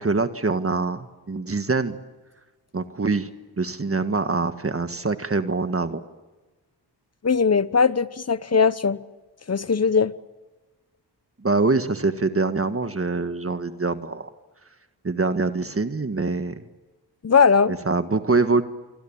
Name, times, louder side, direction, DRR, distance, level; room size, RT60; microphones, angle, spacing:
voice 1, 0.0-2.0 2.7-3.3 3.6-6.0 11.4-14.3 15.0-16.5 17.7-18.6, right 3 dB, 35° right, 1.7 m, -24 dB
voice 2, 7.2-9.0 9.5-10.1 17.2-17.7, left 5 dB, 40° left, 1.1 m, -19 dB
27.5 x 24.5 x 8.8 m
cardioid pair, 65°, 41 cm